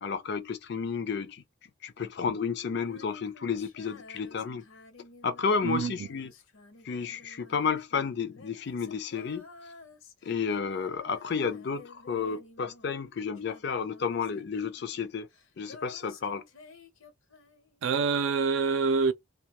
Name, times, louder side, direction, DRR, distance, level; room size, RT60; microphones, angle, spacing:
voice 1, 0.0-1.4 1.8-4.6 5.2-6.3 6.8-9.5 10.2-15.3 15.6-16.4, left 5 dB, 50° left, 0.4 m, -31 dB
Female singing, 2.8-13.1 13.4-17.8, left 3 dB, 80° left, 0.7 m, -53 dB
voice 2, 5.6-6.1 17.8-19.1, right 5 dB, 70° right, 0.4 m, -26 dB
2.2 x 2.1 x 2.8 m
head